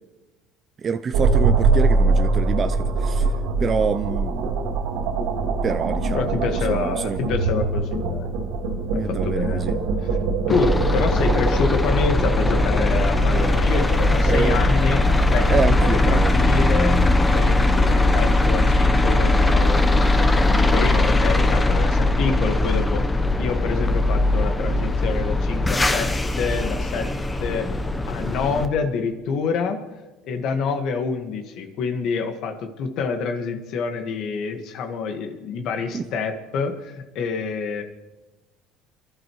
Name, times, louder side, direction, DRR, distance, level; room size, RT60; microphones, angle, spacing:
voice 1, 0.8-3.3 3.6-4.5 5.6-7.2 8.9-9.8 14.2-14.6 15.5-16.4 35.9-36.0, right 6 dB, 35° right, 8 dB, 0.5 m, -26 dB
sound 1, 1.1-18.4, right 4 dB, 80° right, 3.2 m, -24 dB
voice 2, 6.1-8.3 8.9-9.8 10.5-15.0 15.3-17.0 17.3-23.0 23.4-27.1 27.4-27.7 28.1-29.8 30.2-37.8, left 5 dB, 60° left, 7 dB, 1.6 m, -27 dB
sound 2, 10.5-28.7, left 2 dB, 15° left, 0.9 m, -20 dB
29.0 x 11.5 x 3.1 m, 1.1 s
supercardioid pair, 105°, 0 cm